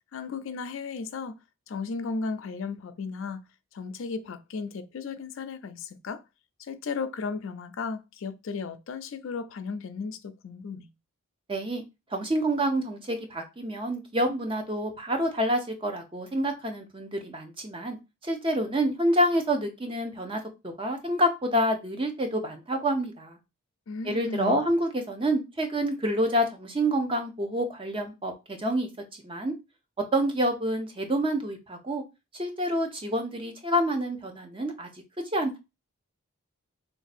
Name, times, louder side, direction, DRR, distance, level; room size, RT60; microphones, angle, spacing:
voice 1, 0.1-1.3 1.7-3.4 3.7-6.2 6.6-10.9 23.9-24.6, left 4 dB, 60° left, 0.4 m, -35 dB
voice 2, 11.5-11.8 12.1-18.0 18.2-23.4 24.0-28.9 29.2-29.5 30.1-32.0 32.3-34.9 35.3-35.6, equal, 25° right, 0.6 m, -27 dB
3.3 x 2.6 x 4.1 m
head